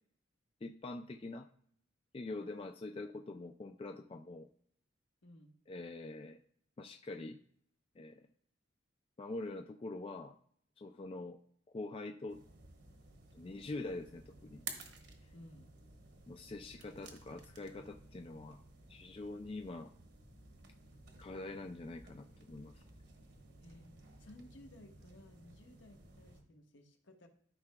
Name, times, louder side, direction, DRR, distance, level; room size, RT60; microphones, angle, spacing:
voice 1, 0.6-1.5 2.1-4.5 5.7-6.4 6.8-7.4 8.0-8.2 9.2-10.4 10.8-11.4 11.7-12.4 13.3-14.6 16.3-18.6 18.9-19.9 21.2-22.7, left 2 dB, 30° left, 5 dB, 0.3 m, -44 dB
voice 2, 5.2-5.5 15.3-15.7 23.6-23.9 24.2-27.3, left 1 dB, 70° left, 3 dB, 1.1 m, -57 dB
sound 1, 12.3-26.4, right 4 dB, 60° right, 1.2 m, -54 dB
13.0 x 5.7 x 2.2 m, 0.64 s
head